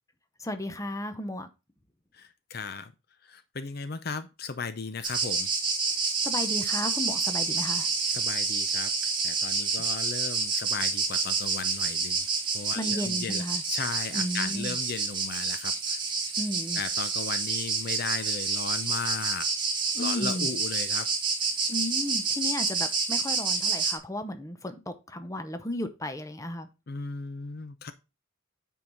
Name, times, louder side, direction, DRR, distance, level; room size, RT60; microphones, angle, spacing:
voice 1, 0.4-1.5 6.2-7.9 12.7-13.6 14.1-14.8 16.4-16.8 19.9-20.5 21.7-26.7, left 1 dB, 15° left, 0.8 m, -34 dB
voice 2, 2.1-2.9 3.2-5.5 8.0-12.3 12.5-16.0 16.7-19.5 20.0-21.1 26.9-27.9, left 5 dB, 50° left, 0.6 m, -36 dB
sound 1, 5.0-24.0, right 4 dB, 25° right, 1.7 m, -28 dB
9.0 x 4.7 x 4.0 m
head